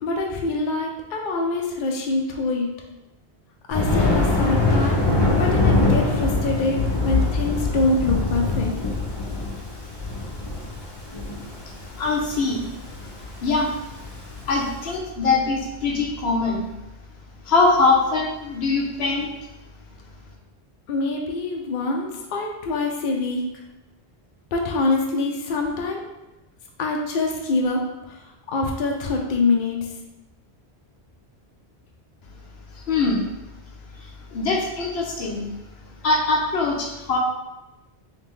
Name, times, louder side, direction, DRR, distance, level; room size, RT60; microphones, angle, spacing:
voice 1, 0.0-2.7 3.7-8.7 20.9-23.4 24.5-26.0 26.8-27.8 28.1-28.2 28.5-29.8, left 3 dB, 55° left, 1 dB, 0.7 m, -25 dB
Thunder, 3.7-14.8, left 3 dB, 30° left, 0.7 m, -23 dB
voice 2, 12.0-12.6 13.4-13.7 14.5-16.7 17.5-19.3 32.9-33.2 34.3-35.5 36.0-37.2, left 3 dB, 75° left, 0 dB, 0.9 m, -22 dB
3.7 x 3.2 x 3.1 m, 0.97 s
omnidirectional pair, 1.1 m